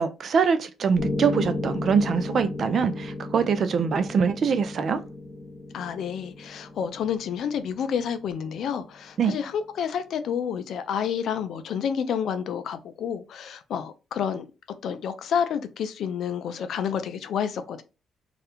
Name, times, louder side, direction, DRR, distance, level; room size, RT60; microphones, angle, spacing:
voice 1, 0.0-5.0 9.2-9.3, right 6 dB, 55° right, 0.3 m, -23 dB
Piano, 1.0-9.0, left 2 dB, 35° left, 1.0 m, -34 dB
voice 2, 5.7-14.4 14.8-17.8, left 7 dB, 70° left, 0.3 m, -29 dB
2.4 x 2.0 x 2.9 m
cardioid pair, 90°, 0 cm